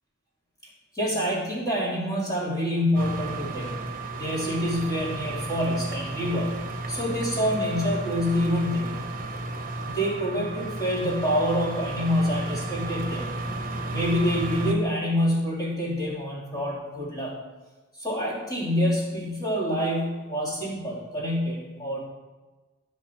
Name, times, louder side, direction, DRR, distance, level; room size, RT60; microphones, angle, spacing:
voice 1, 0.9-3.8 4.2-9.0 9.8-13.3 13.9-17.4 18.0-22.0, equal, 20° left, -5 dB, 3.2 m, -27 dB
sound 1, 2.9-14.7, right 2 dB, 40° right, 1.2 m, -33 dB
15.0 x 5.3 x 4.6 m, 1.2 s
head